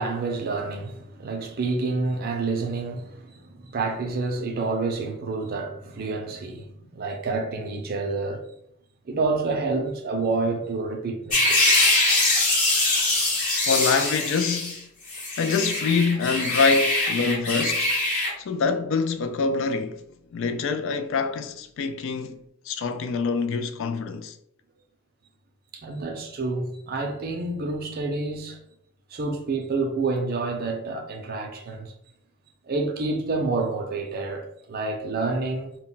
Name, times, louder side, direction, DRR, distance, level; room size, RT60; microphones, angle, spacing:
voice 1, 0.0-6.7 6.9-8.4 9.1-11.8 25.7-28.6 29.1-31.9 32.7-35.8, right 3 dB, 45° right, 0.5 m, -28 dB
sound 1, 11.3-14.8 15.1-18.3, left 2 dB, 40° left, 0.9 m, -23 dB
voice 2, 13.6-14.9 15.4-17.9 18.4-20.1 20.3-24.4, left 4 dB, 60° left, 0.3 m, -25 dB
2.2 x 2.1 x 3.8 m
head